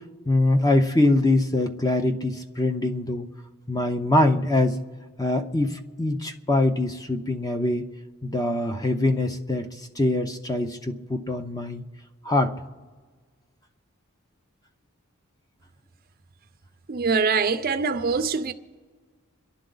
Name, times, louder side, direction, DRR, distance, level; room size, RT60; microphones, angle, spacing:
voice 1, 0.3-3.3 3.7-4.8 5.2-7.9 8.2-11.8 12.2-12.6, left 2 dB, 15° left, 0.7 m, -23 dB
voice 2, 16.9-18.5, right 5 dB, 40° right, 0.6 m, -23 dB
27.5 x 11.5 x 3.9 m
head